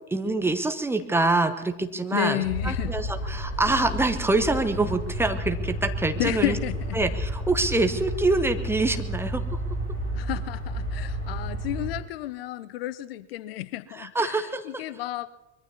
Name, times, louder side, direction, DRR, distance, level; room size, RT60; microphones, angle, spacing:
voice 1, 0.1-6.6 6.9-9.4 13.9-14.8, right 2 dB, 5° right, 0.7 m, -25 dB
voice 2, 2.1-2.9 6.2-7.0 10.1-15.3, left 14 dB, 50° left, 0.6 m, -31 dB
sound 1, 2.4-11.9, equal, 90° right, 6.0 m, -31 dB
24.0 x 22.0 x 2.8 m
figure-of-eight pair, 85°, 38 cm